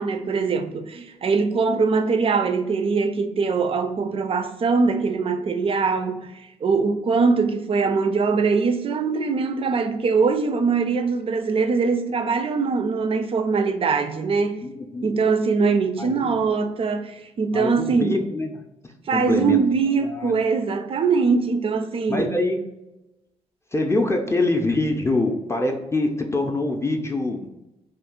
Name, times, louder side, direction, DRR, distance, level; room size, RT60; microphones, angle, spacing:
voice 1, 0.0-6.3 6.6-14.6 15.0-18.1 19.1-22.3, right 4 dB, 40° right, 0.4 m, -22 dB
voice 2, 14.6-15.1 16.0-16.4 17.5-18.7 19.1-19.6 20.0-20.3 22.1-22.6 23.7-27.5, left 2 dB, 20° left, 0.5 m, -24 dB
2.5 x 2.3 x 3.6 m
hypercardioid pair, 45°, 15 cm